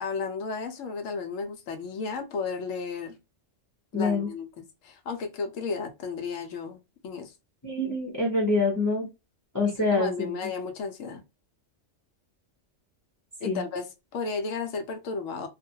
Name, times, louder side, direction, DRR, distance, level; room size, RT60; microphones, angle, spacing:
voice 1, 0.0-3.2 3.9-7.3 9.6-11.2 13.4-15.5, left 4 dB, 85° left, 1.0 m, -33 dB
voice 2, 3.9-4.3 7.6-9.1 9.5-10.3 13.4-13.6, left 2 dB, 20° left, 0.5 m, -26 dB
2.4 x 2.1 x 2.7 m
omnidirectional pair, 1.3 m